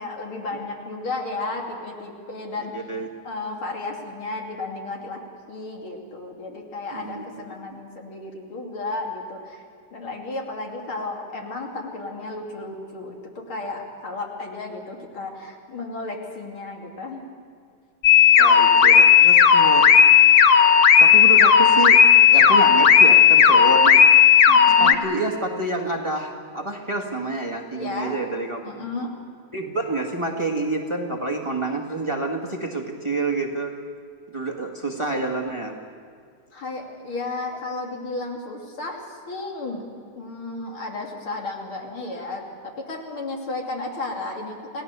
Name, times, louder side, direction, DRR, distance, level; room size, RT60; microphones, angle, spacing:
voice 1, 0.0-2.7 3.2-5.2 5.5-9.6 9.9-17.2 24.5-25.0 27.7-28.2 28.6-29.1 36.5-39.9 40.2-44.8, left 2 dB, 75° left, 0 dB, 3.6 m, -33 dB
voice 2, 2.7-3.1 6.9-7.4 18.4-19.9 21.0-22.0 22.3-24.0 24.8-28.9 29.5-33.7 34.3-35.8, right 2 dB, 15° right, 1 dB, 1.6 m, -28 dB
sound 1, 18.0-24.9, left 7 dB, 55° left, 0.9 m, -13 dB
28.5 x 17.5 x 6.8 m, 2.2 s
omnidirectional pair, 2.3 m